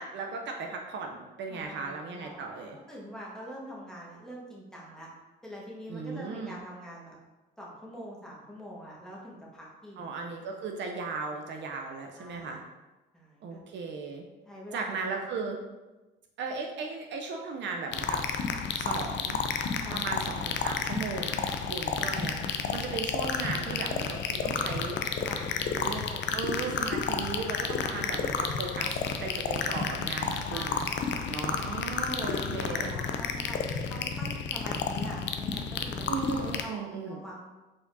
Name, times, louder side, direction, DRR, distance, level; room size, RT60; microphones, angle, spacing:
voice 1, 0.0-2.8 5.9-6.6 10.0-12.6 13.4-14.3 14.7-15.6 16.4-18.2 18.8-19.4 19.9-25.0 25.7-30.9 31.3-32.9 36.1-37.2, right 4 dB, 65° right, 2 dB, 0.6 m, -36 dB
voice 2, 1.5-5.1 5.4-7.2 7.6-10.1 12.2-12.6 13.1-13.6 14.4-15.0 19.8-20.4 21.3-21.4 25.2-25.8 30.5-31.1 31.6-31.7 32.0-33.6 33.9-36.1 36.4-37.4, equal, 5° left, -5 dB, 1.5 m, -44 dB
sound 1, 17.9-36.6, left 6 dB, 65° left, 0.5 m, -31 dB
4.6 x 4.2 x 2.7 m, 1.1 s
cardioid pair, 90°, 20 cm